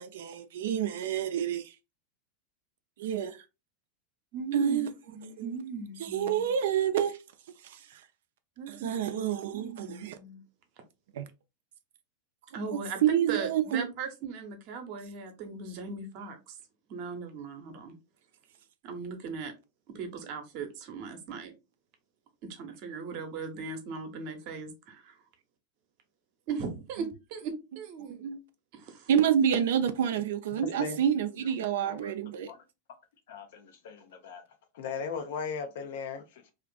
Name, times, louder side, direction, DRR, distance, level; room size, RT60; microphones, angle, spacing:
voice 1, 0.0-1.6 3.0-3.3 4.5-4.9 5.4-5.6 6.0-7.1 8.7-10.2 11.2-11.3 13.0-13.9 28.1-28.4 29.1-32.5, right 9 dB, 70° right, 0.4 m, -28 dB
voice 2, 4.3-6.5 8.6-10.4 12.5-16.6 16.9-17.9 18.8-19.5 19.9-21.5 22.5-25.1 26.5-28.3 28.7-29.1, right 5 dB, 55° right, 0.8 m, -38 dB
voice 3, 33.3-34.4 34.7-36.5, left 6 dB, 70° left, 0.6 m, -38 dB
2.5 x 2.5 x 2.2 m
hypercardioid pair, 100°, 0 cm